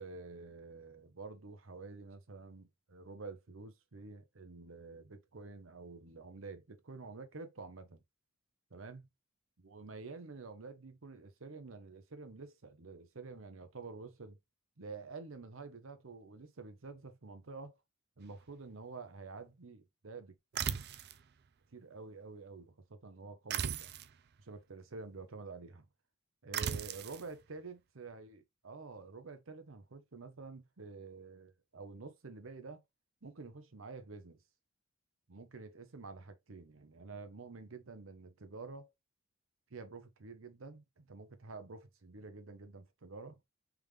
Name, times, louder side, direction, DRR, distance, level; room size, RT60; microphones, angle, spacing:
voice 1, 0.0-8.0 8.7-9.0 9.6-14.4 14.8-17.7 18.2-20.3 21.7-23.9 24.4-25.8 26.4-32.8 33.2-34.4 35.3-38.9 39.7-43.4, right 4 dB, 70° right, 0.8 m, -49 dB
sound 1, 20.5-21.2 23.5-24.1 26.5-27.2, right 8 dB, 50° right, 0.4 m, -37 dB
3.6 x 3.5 x 3.2 m
head